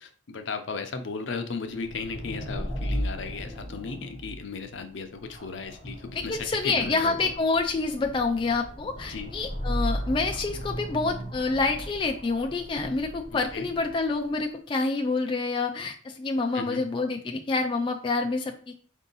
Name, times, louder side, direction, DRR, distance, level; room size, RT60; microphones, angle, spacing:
voice 1, 0.0-7.3 9.1-9.3 13.5-13.7 16.5-16.8, left 4 dB, 70° left, 7 dB, 0.6 m, -35 dB
sound 1, 1.7-14.3, equal, 35° right, 2.1 m, -36 dB
voice 2, 6.1-18.8, left 3 dB, 25° left, 3 dB, 0.3 m, -27 dB
4.5 x 2.7 x 3.9 m, 0.42 s
head